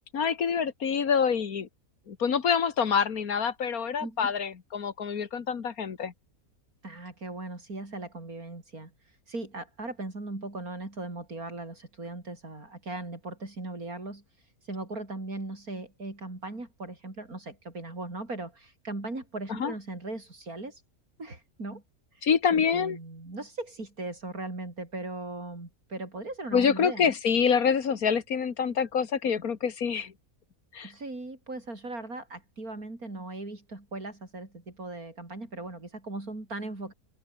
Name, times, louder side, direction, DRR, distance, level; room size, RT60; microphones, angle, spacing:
voice 1, 0.1-1.7 2.1-6.1 19.6-19.7 22.2-23.0 26.5-30.1 30.7-30.9, left 6 dB, 85° left, 2.1 m, -26 dB
voice 2, 4.0-4.3 6.8-20.8 21.2-21.8 22.1-27.1 30.8-36.9, right 2 dB, 85° right, 6.1 m, -39 dB
open air
omnidirectional pair, 1.5 m